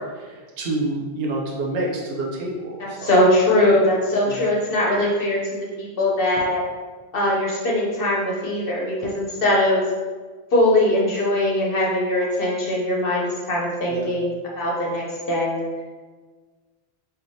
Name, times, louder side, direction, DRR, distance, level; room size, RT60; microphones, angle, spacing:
voice 1, 0.6-3.1 4.3-4.4 13.9-14.1, right 2 dB, 75° right, -2 dB, 1.0 m, -27 dB
voice 2, 2.8-6.6 7.1-9.8 10.5-15.6, left 1 dB, 65° left, -4 dB, 1.0 m, -21 dB
4.7 x 2.5 x 2.7 m, 1.4 s
omnidirectional pair, 1.0 m